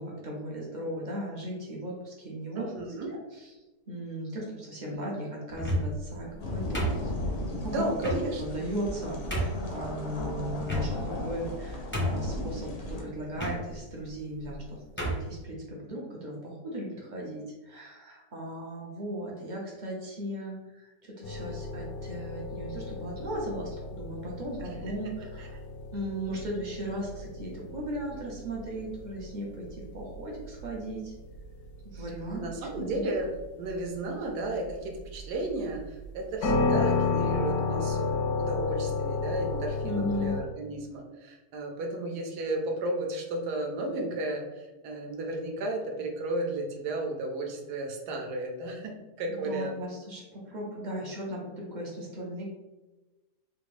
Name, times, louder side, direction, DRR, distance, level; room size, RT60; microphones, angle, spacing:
voice 1, 0.0-2.6 3.1-3.2 3.9-7.1 7.6-8.1 8.4-25.6 25.9-31.1 32.0-32.4 32.7-32.8 39.8-40.4 49.3-52.4, equal, 55° right, -3 dB, 0.5 m, -37 dB
voice 2, 2.5-3.1 7.7-8.6 24.6-24.9 25.4-25.5 31.9-33.3 33.6-49.8, right 2 dB, 80° right, 2 dB, 1.2 m, -34 dB
sound 1, 5.5-6.0 6.7-7.4 8.0-8.2 8.8-8.9 9.3-9.6 10.6-11.2 11.5-11.6 11.9-12.4 13.3-13.6 14.4-14.6 15.0-15.3, equal, 15° left, 0.4 m, -30 dB
sound 2, 6.4-13.0, left 1 dB, 55° left, 0.7 m, -36 dB
sound 3, 21.2-40.4, left 4 dB, 75° left, 1.0 m, -33 dB
3.5 x 2.5 x 3.2 m, 1.1 s
omnidirectional pair, 1.7 m